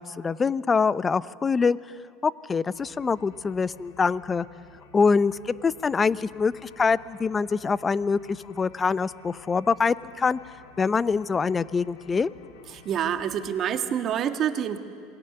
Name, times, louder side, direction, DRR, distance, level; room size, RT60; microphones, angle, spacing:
voice 1, 0.0-1.8 2.2-4.5 4.9-10.4 10.8-12.3, left 5 dB, 25° left, 17 dB, 0.7 m, -24 dB
sound 1, 2.7-13.5, left 5 dB, 80° left, 2.3 m, -52 dB
voice 2, 12.7-14.8, right 9 dB, 45° right, 7 dB, 1.8 m, -27 dB
27.5 x 21.5 x 7.0 m, 2.2 s
hypercardioid pair, 85°, 0 cm